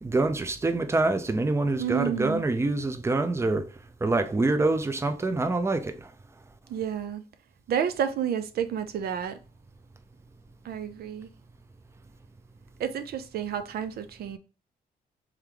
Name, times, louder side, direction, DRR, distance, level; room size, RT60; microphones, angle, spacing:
voice 1, 0.0-3.7 4.0-6.1, right 2 dB, 15° right, 0.5 m, -26 dB
voice 2, 1.8-2.4 6.7-7.2 7.7-9.4 10.6-11.3 12.8-14.4, right 8 dB, 70° right, 0.4 m, -30 dB
3.4 x 3.1 x 3.7 m
cardioid pair, 85°, 16 cm